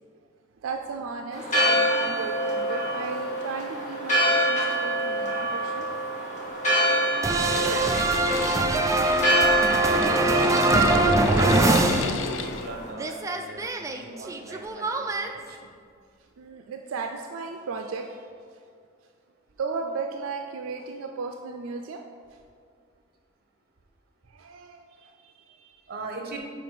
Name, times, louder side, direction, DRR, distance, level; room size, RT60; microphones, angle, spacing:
voice 1, 0.6-5.9 16.4-18.4 19.6-22.0 22.3-22.4 24.3-25.8, right 4 dB, 85° right, 4 dB, 0.4 m, -36 dB
Church bell, 1.3-12.9, right 1 dB, 40° left, 1.5 m, -26 dB
sound 1, 7.2-12.7 13.0-15.3, right 2 dB, 15° right, 0.3 m, -23 dB
voice 2, 7.4-11.7 12.2-15.7 25.9-26.4, right 3 dB, 50° right, 2 dB, 1.0 m, -42 dB
sound 2, 7.5-12.7, left 7 dB, 65° left, 0.3 m, -33 dB
5.1 x 4.4 x 5.9 m, 2.1 s
head